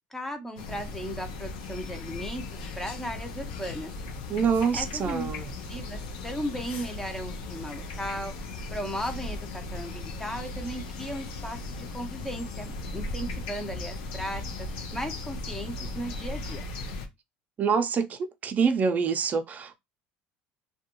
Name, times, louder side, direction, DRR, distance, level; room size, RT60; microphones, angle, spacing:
voice 1, 0.1-3.9 4.7-5.3 5.7-16.6, equal, 10° left, 0.6 m, -36 dB
sound 1, 0.6-17.1, left 2 dB, 85° left, 0.6 m, -37 dB
voice 2, 4.3-5.5 17.6-19.7, right 6 dB, 35° right, 0.5 m, -26 dB
2.4 x 2.2 x 2.9 m
supercardioid pair, 100°, 5 cm